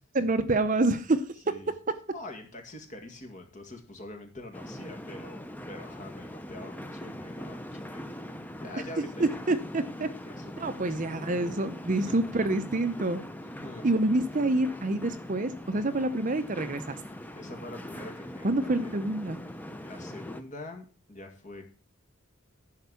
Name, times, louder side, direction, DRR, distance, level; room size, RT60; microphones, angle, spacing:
voice 1, 0.1-1.2 9.2-10.1 10.6-13.2 13.8-17.0 18.4-19.4, right 2 dB, 35° right, 10 dB, 0.6 m, -27 dB
voice 2, 2.1-5.4 5.7-8.1 8.6-9.4 10.3-11.0 12.0-12.2 13.4-13.9 17.4-18.9 19.8-21.7, left 2 dB, 35° left, 3 dB, 2.0 m, -44 dB
sound 1, 4.5-20.4, equal, 10° left, 0.6 m, -41 dB
11.0 x 4.6 x 8.1 m, 0.41 s
head